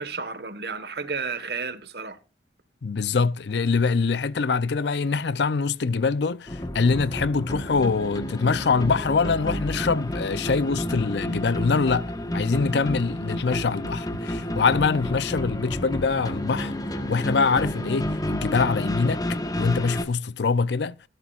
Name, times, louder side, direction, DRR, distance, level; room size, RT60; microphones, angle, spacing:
voice 1, 0.0-2.2, right 4 dB, 65° right, 1.4 m, -32 dB
voice 2, 2.8-16.7 17.1-21.0, left 4 dB, 70° left, 0.5 m, -24 dB
sound 1, 6.5-20.0, equal, 20° left, 1.2 m, -30 dB
17.0 x 11.5 x 2.4 m
head